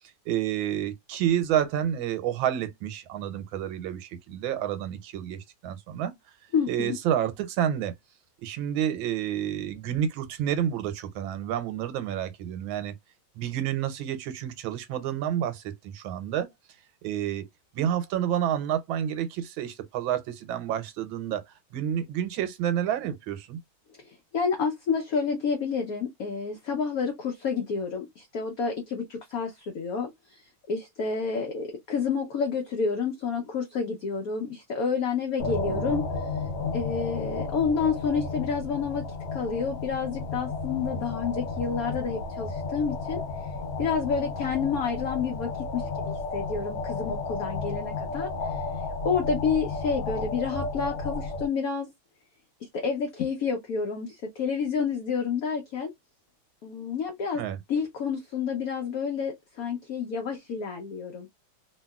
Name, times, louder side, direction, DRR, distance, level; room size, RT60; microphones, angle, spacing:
voice 1, 0.3-6.1 6.7-7.9 8.4-12.9 13.4-16.5 17.0-17.4 17.7-21.4 21.7-23.6 35.5-36.0 57.3-57.6, right 10 dB, 85° right, 1.4 m, -29 dB
voice 2, 6.5-7.0 24.0-30.4 30.7-36.0 36.7-39.1 39.3-43.2 43.8-48.6 49.0-51.9 52.7-55.9 56.6-57.4 57.7-61.3, left 5 dB, 65° left, 0.9 m, -29 dB
sound 1, 35.4-51.5, left 3 dB, 85° left, 1.4 m, -33 dB
2.9 x 2.8 x 2.2 m
omnidirectional pair, 2.2 m